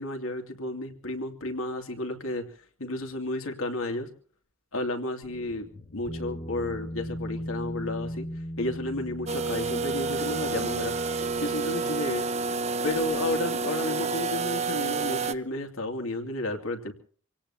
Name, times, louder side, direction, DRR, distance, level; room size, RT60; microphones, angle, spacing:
voice 1, 0.0-2.5 2.8-4.1 4.7-5.7 5.9-8.3 8.6-12.3 12.8-16.9, left 2 dB, 90° left, 4 dB, 2.8 m, -32 dB
sound 1, 5.2-12.6, equal, 30° left, 1.0 m, -39 dB
sound 2, 9.3-15.3, right 4 dB, 30° right, 0.7 m, -29 dB
27.0 x 17.5 x 2.9 m, 0.43 s
head